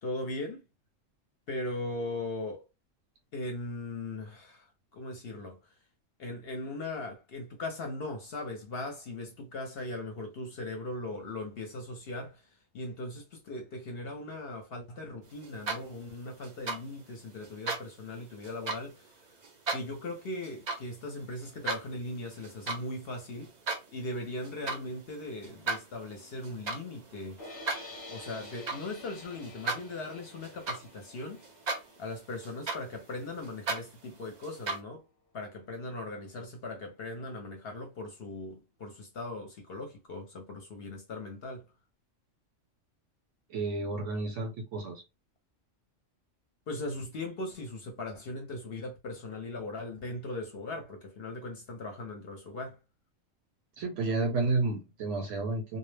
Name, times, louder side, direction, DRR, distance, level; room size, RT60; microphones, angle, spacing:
voice 1, 0.0-0.6 1.5-2.6 3.3-4.7 4.9-5.7 6.2-19.2 19.7-23.5 23.9-27.4 28.1-31.4 32.0-35.0 35.3-41.7 46.7-52.8, left 2 dB, 60° left, 0.7 m, -39 dB
sound 1, 15.4-16.1 16.4-16.8 17.4-17.8 18.4-18.8 19.4-19.8 20.4-20.8 21.2-21.8 22.3-22.9 23.2-23.8 24.4-24.8 25.4-31.2 31.4-32.1 32.4-34.8, right 3 dB, 50° right, 0.5 m, -36 dB
sound 2, 27.4-33.5, left 1 dB, 20° left, 0.7 m, -49 dB
voice 2, 43.5-45.0 53.8-55.8, right 3 dB, 75° right, 0.9 m, -31 dB
2.2 x 2.0 x 3.2 m
omnidirectional pair, 1.3 m